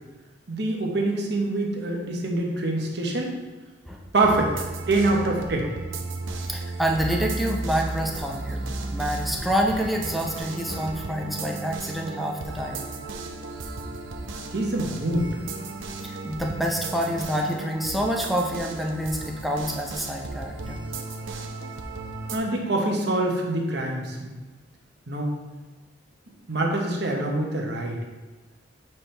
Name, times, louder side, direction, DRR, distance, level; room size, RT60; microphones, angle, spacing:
voice 1, 0.5-3.3 4.1-4.5 4.9-5.7 14.5-15.3 22.3-24.3 25.1-25.3 26.5-28.0, right 2 dB, 55° right, 0 dB, 1.0 m, -25 dB
sound 1, 4.2-22.4, right 2 dB, 80° right, 0.7 m, -35 dB
voice 2, 6.3-12.9 16.0-20.8, equal, ahead, -1 dB, 0.5 m, -27 dB
7.4 x 4.4 x 3.3 m, 1.2 s
head